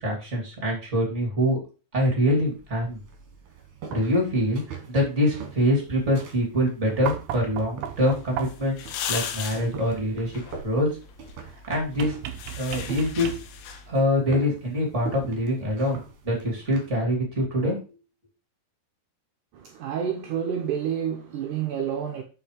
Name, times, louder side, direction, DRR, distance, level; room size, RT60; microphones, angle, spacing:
voice 1, 0.0-1.6 1.9-3.0 3.9-4.6 4.9-8.8 9.1-10.9 11.7-12.1 12.6-13.3 13.9-17.8, equal, 20° right, 2.5 m, -24 dB
sound 1, 2.4-16.9, right 5 dB, 55° right, 2.7 m, -43 dB
sound 2, 7.1-8.8 12.0-13.7 15.3-15.4, right 10 dB, 90° right, 1.9 m, -35 dB
sound 3, 7.9-14.1, left 8 dB, 85° left, 3.1 m, -38 dB
voice 2, 19.5-22.2, right 8 dB, 75° right, 1.9 m, -29 dB
7.0 x 5.6 x 5.0 m
omnidirectional pair, 4.8 m